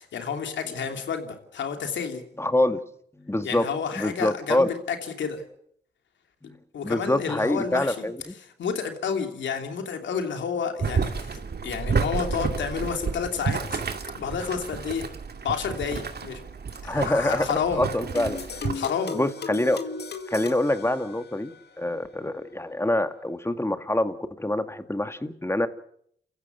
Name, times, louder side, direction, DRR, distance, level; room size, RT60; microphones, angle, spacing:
voice 1, 0.0-2.2 3.4-5.4 6.7-8.1 8.6-13.8 14.1-15.1 15.4-16.4 16.8-17.9 18.7-19.2, left 6 dB, 90° left, 5 dB, 3.0 m, -30 dB
voice 2, 2.4-2.8 3.2-3.7 4.0-4.7 6.4-6.6 6.8-8.4 16.8-18.4 19.1-19.8 20.3-21.5 21.8-25.7, left 1 dB, 15° left, 9 dB, 2.2 m, -25 dB
Boiling, 10.8-18.7, right 5 dB, 60° right, 2.5 m, -30 dB
sound 1, 18.2-21.6, left 4 dB, 65° left, 2.1 m, -36 dB
29.0 x 15.5 x 8.2 m, 0.69 s
cardioid pair, 50°, 19 cm